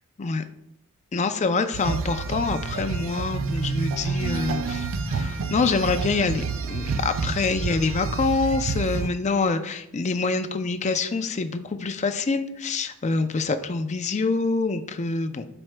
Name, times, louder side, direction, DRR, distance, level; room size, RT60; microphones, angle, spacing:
voice 1, 1.1-15.4, left 4 dB, 30° left, 9 dB, 0.4 m, -26 dB
sound 1, 1.7-9.1, right 4 dB, 65° right, 0.4 m, -29 dB
11.5 x 4.5 x 2.2 m, 0.80 s
head